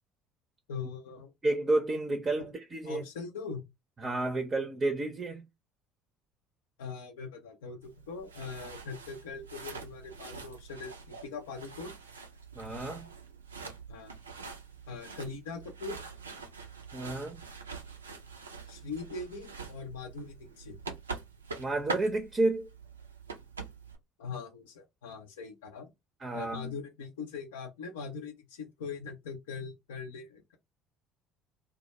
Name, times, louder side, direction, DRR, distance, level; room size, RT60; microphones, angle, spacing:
voice 1, 0.7-1.3 2.9-3.6 6.8-12.0 13.9-14.1 14.9-16.0 18.7-20.8 24.2-25.9 26.3-30.6, left 5 dB, 75° left, 0.4 m, -41 dB
voice 2, 1.4-3.0 4.0-5.4 12.6-13.1 16.9-17.4 21.6-22.7 26.2-26.7, right 2 dB, 30° right, 0.5 m, -31 dB
sound 1, 7.8-24.0, right 4 dB, 85° right, 0.3 m, -44 dB
2.2 x 2.1 x 2.8 m
figure-of-eight pair, 60°, 0 cm